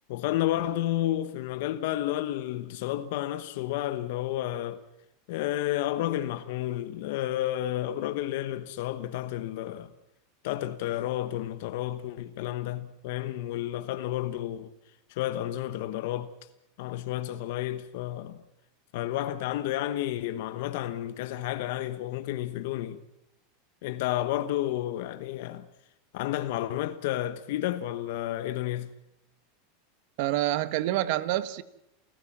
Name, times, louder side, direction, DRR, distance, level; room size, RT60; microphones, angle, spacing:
voice 1, 0.1-4.8 5.3-9.9 10.4-14.7 15.1-16.3 16.8-18.4 18.9-23.0 23.8-25.7 26.1-28.9, left 13 dB, 65° left, 1.1 m, -31 dB
voice 2, 30.2-31.6, right 15 dB, 60° right, 1.3 m, -27 dB
29.0 x 14.5 x 7.4 m
supercardioid pair, 140°, 0 cm